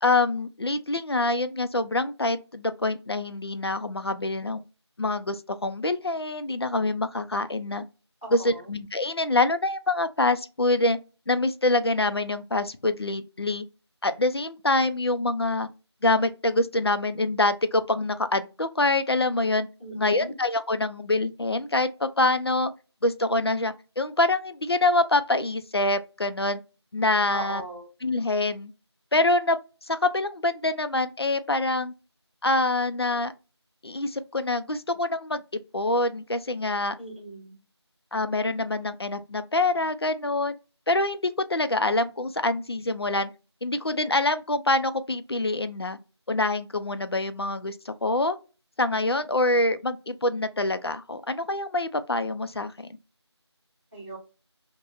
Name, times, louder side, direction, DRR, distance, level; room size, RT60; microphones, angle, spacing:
voice 1, 0.0-4.6 5.0-5.4 5.6-7.8 8.3-11.0 11.3-13.6 14.0-15.7 16.0-19.7 19.9-22.7 23.0-26.6 26.9-27.6 28.0-28.7 29.1-29.6 29.9-31.9 32.4-33.3 33.8-36.9 38.1-40.6 40.9-43.3 43.6-46.0 46.3-48.4 48.8-52.9, left 2 dB, 60° left, 0.4 m, -25 dB
voice 2, 8.2-8.7 19.8-20.3 27.3-27.9 37.0-37.6 53.9-54.2, right 2 dB, 20° left, 1.0 m, -38 dB
3.2 x 2.1 x 2.4 m
figure-of-eight pair, 175°, 15 cm